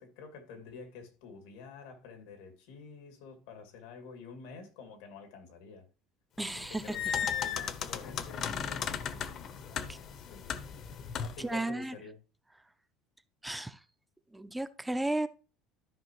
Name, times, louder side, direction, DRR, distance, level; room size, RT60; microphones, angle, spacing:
voice 1, 0.0-5.9 6.4-9.1 9.5-10.5 11.2-12.2, left 5 dB, 90° left, 2.3 m, -49 dB
voice 2, 6.4-7.0 9.9-10.0 11.4-11.9 13.4-13.8 14.3-15.3, right 2 dB, 5° right, 0.4 m, -33 dB
sound 1, 6.5-11.5, left 8 dB, 40° left, 0.7 m, -36 dB
12.5 x 5.5 x 3.0 m
cardioid pair, 155°, 0 cm